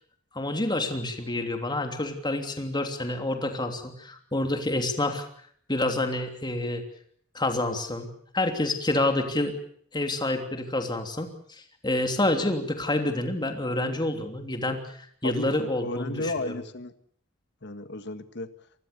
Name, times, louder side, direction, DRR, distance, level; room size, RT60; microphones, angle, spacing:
voice 1, 0.3-5.3 5.7-6.8 7.3-9.5 9.9-11.3 11.8-14.8 15.2-16.5, left 2 dB, 20° left, 5 dB, 3.1 m, -28 dB
voice 2, 15.2-16.9 17.6-18.5, left 2 dB, 60° left, 11 dB, 1.7 m, -33 dB
26.5 x 20.5 x 6.9 m, 0.62 s
head